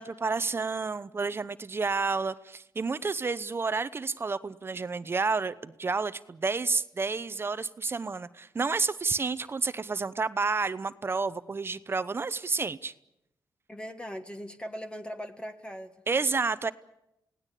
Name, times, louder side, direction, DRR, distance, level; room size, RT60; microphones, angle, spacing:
voice 1, 0.0-12.9 16.1-16.7, right 4 dB, 35° right, 15 dB, 0.9 m, -30 dB
voice 2, 13.7-15.9, equal, 15° left, 7 dB, 1.7 m, -39 dB
29.5 x 18.0 x 8.4 m, 0.86 s
cardioid pair, 90°, 7 cm